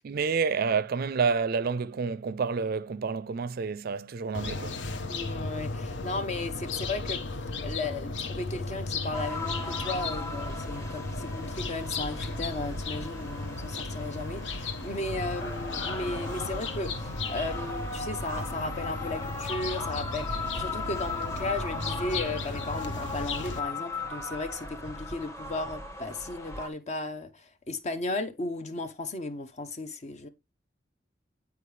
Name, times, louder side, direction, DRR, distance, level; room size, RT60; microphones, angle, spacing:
voice 1, 0.0-4.8, right 5 dB, 55° right, 0.4 m, -29 dB
sound 1, 4.3-23.6, left 3 dB, 75° left, 0.8 m, -35 dB
voice 2, 5.1-7.2 7.6-30.3, left 2 dB, 40° left, 0.6 m, -35 dB
sound 2, 9.1-26.7, left 3 dB, 15° left, 0.9 m, -38 dB
8.4 x 4.6 x 3.2 m
head